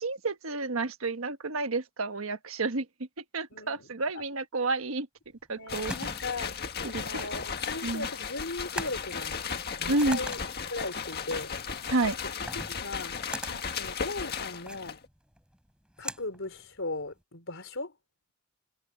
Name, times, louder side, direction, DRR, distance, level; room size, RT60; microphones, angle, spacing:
voice 1, 0.0-2.9 3.2-5.1 5.5-5.9 6.8-7.3 7.8-8.1 9.9-10.2 11.9-12.2, right 3 dB, 80° right, 1.3 m, -30 dB
voice 2, 3.5-3.9 4.1-4.2 5.5-6.5 6.8-9.4 9.8-10.4 10.7-11.6 12.7-15.0 16.0-17.9, left 2 dB, 65° left, 4.5 m, -38 dB
sound 1, 5.3-17.2, right 1 dB, 5° right, 4.8 m, -43 dB
sound 2, 5.7-15.0, left 6 dB, 50° left, 1.7 m, -35 dB
head